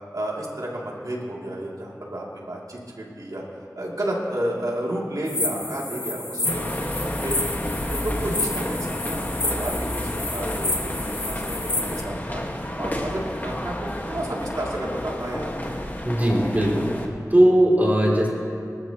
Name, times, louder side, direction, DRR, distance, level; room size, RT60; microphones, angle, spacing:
voice 1, 0.1-3.4 3.8-7.5 7.9-11.0 11.2-15.5, right 1 dB, 70° right, -4 dB, 2.9 m, -31 dB
sound 1, 5.3-12.0, left 2 dB, 80° left, 1.8 m, -30 dB
sound 2, 6.4-17.1, left 1 dB, 30° left, 1.7 m, -30 dB
voice 2, 16.0-18.3, right 1 dB, 30° right, -3 dB, 3.1 m, -19 dB
24.0 x 13.5 x 3.1 m, 2.4 s
wide cardioid pair, 50°, 6 cm